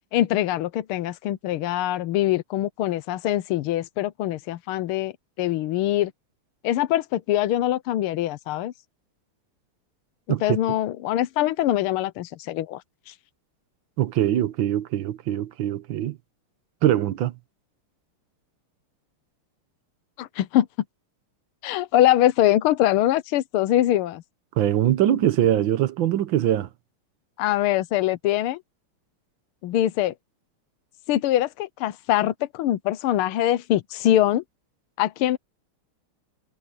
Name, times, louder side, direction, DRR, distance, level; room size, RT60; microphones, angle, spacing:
voice 1, 0.1-5.1 5.4-6.1 6.6-8.7 10.4-12.8 13.1-13.2 20.2-20.7 21.6-24.2 27.4-28.6 29.6-30.1 31.1-34.4 35.0-35.4, left 13 dB, 85° left, 1.6 m, -23 dB
voice 2, 14.0-16.2 16.8-17.3 24.6-26.7, right 12 dB, 65° right, 1.6 m, -22 dB
omnidirectional pair, 2.4 m